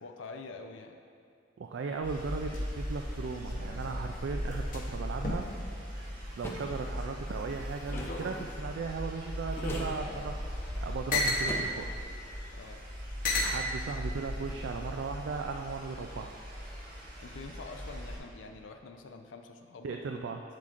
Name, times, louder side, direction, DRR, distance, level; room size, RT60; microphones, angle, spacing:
voice 1, 0.0-1.0 12.5-12.8 17.2-20.3, left 3 dB, 80° left, 5 dB, 0.5 m, -46 dB
voice 2, 1.6-5.5 6.4-10.4 10.8-11.9 13.4-16.3 19.8-20.4, right 4 dB, 70° right, 3 dB, 0.3 m, -37 dB
sound 1, 2.0-7.0 7.4-8.6 9.3-11.5 12.4-12.5 13.2-13.6 14.5-14.8, left 2 dB, 45° left, 0.8 m, -36 dB
sound 2, 2.0-18.2, equal, 45° right, 1.4 m, -39 dB
sound 3, 6.4-6.7 7.9-8.2 9.6-10.0 11.5-11.9, equal, 10° left, 0.5 m, -40 dB
7.6 x 7.3 x 2.5 m, 2.6 s
head